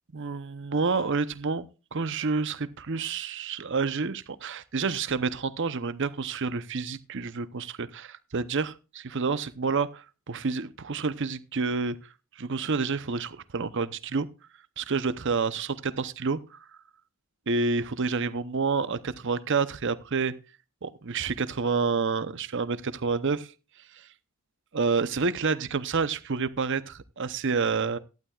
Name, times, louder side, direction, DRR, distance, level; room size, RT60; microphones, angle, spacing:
voice 1, 0.1-12.0 12.4-14.3 14.8-16.6 17.5-20.3 20.8-23.5 24.7-28.0, right 4 dB, 55° right, 0.8 m, -29 dB
17.0 x 12.0 x 2.4 m
head